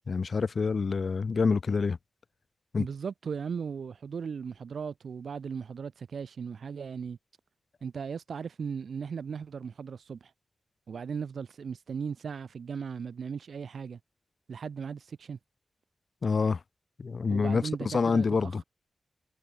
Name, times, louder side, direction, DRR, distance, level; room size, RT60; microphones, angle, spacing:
voice 1, 0.1-2.0 2.7-2.8 16.2-16.6 17.0-18.6, left 4 dB, 45° left, 0.5 m, -27 dB
voice 2, 2.8-7.2 7.8-10.3 10.9-14.0 14.5-15.4 17.3-18.6, right 6 dB, 65° right, 0.8 m, -37 dB
wide cardioid pair, 180°, 0 cm